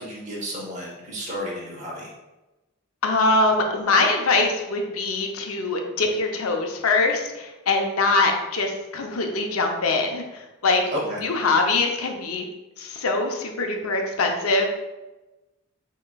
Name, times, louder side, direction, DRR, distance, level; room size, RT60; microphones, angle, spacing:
voice 1, 0.0-2.1 10.9-11.2, equal, 35° right, -4 dB, 0.9 m, -32 dB
voice 2, 3.0-12.4 12.8-14.7, left 3 dB, 85° left, 3 dB, 0.7 m, -23 dB
6.4 x 3.0 x 2.3 m, 1.1 s
head